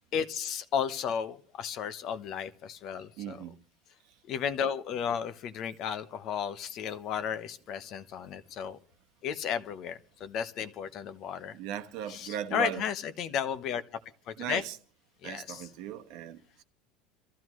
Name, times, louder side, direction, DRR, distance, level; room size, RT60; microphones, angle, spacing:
voice 1, 0.1-3.4 4.3-8.8 9.2-11.6 12.1-13.8 14.3-14.6 15.2-15.6, left 8 dB, 40° left, 0.9 m, -33 dB
voice 2, 3.2-3.6 9.6-9.7 11.5-12.8 14.4-14.8 15.2-16.6, right 10 dB, 55° right, 1.2 m, -38 dB
27.0 x 14.5 x 3.1 m
cardioid pair, 160°, 0 cm